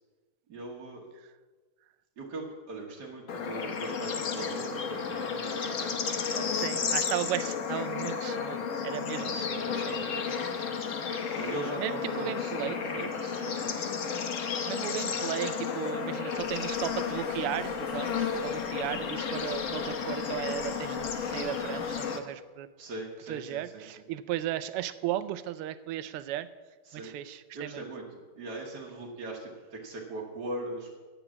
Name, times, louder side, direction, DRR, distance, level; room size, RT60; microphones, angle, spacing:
voice 1, 0.5-1.1 2.2-6.9 8.7-10.0 11.4-13.7 22.8-23.8 26.9-27.1 27.5-28.0 28.4-31.0, right 2 dB, 50° right, -3 dB, 1.8 m, -40 dB
Bird / Insect / Frog, 3.3-22.2, left 6 dB, 60° left, 0.8 m, -32 dB
voice 2, 6.5-10.8 11.2-13.1 14.6-22.7 23.3-26.5 26.9-27.8, right 12 dB, 90° right, 13 dB, 1.5 m, -36 dB
sound 1, 16.4-22.0, left 2 dB, 80° left, 3.0 m, -50 dB
10.0 x 7.4 x 7.2 m, 1.3 s
omnidirectional pair, 2.4 m